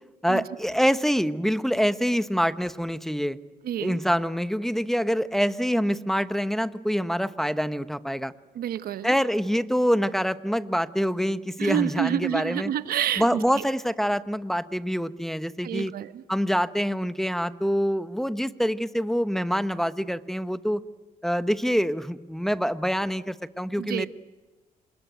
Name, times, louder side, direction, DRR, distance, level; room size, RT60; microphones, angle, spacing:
voice 1, 0.2-3.4 3.8-8.3 9.0-12.7 13.2-15.9 16.3-20.8 21.2-24.1, equal, ahead, 12 dB, 1.0 m, -25 dB
voice 2, 3.6-4.0 8.5-9.2 11.6-13.6 15.6-16.2 23.8-24.1, right 10 dB, 70° right, 13 dB, 0.9 m, -28 dB
27.0 x 20.5 x 9.2 m, 1.3 s
supercardioid pair, 70°, 16 cm